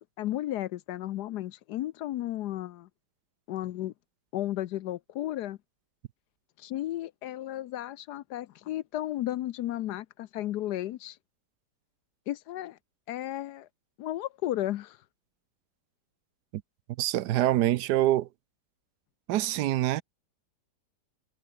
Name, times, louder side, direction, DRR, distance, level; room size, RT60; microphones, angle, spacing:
voice 1, 0.2-2.9 3.5-3.9 4.3-5.6 6.6-11.2 12.3-12.8 13.1-13.7 14.0-15.0, left 14 dB, 75° left, 1.1 m, -34 dB
voice 2, 17.0-18.3 19.3-20.0, right 14 dB, 75° right, 1.2 m, -25 dB
omnidirectional pair, 1.9 m